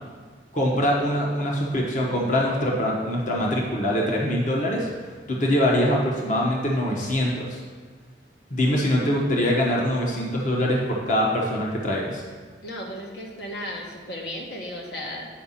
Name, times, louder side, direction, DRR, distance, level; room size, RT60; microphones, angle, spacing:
voice 1, 0.5-4.9 5.3-7.6 8.5-12.2, equal, 45° left, -2 dB, 1.2 m, -23 dB
voice 2, 12.6-15.3, left 1 dB, 65° left, -1 dB, 1.3 m, -35 dB
9.0 x 5.0 x 5.7 m, 1.5 s
head